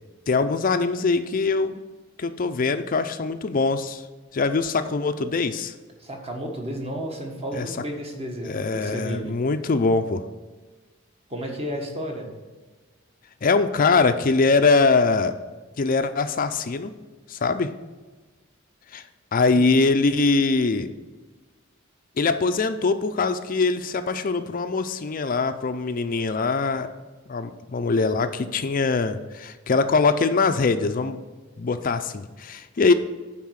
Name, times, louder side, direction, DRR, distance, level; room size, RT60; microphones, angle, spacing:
voice 1, 0.3-1.8 2.2-4.0 4.3-5.7 7.5-7.8 8.4-10.2 13.4-15.3 15.8-16.9 17.3-17.7 18.9-19.0 19.3-20.9 22.2-26.9 27.3-31.2 31.6-32.9, left 4 dB, 40° left, 10 dB, 0.4 m, -22 dB
voice 2, 6.0-9.4 11.3-12.3, equal, 30° right, 1 dB, 1.4 m, -32 dB
9.4 x 4.1 x 6.3 m, 1.3 s
head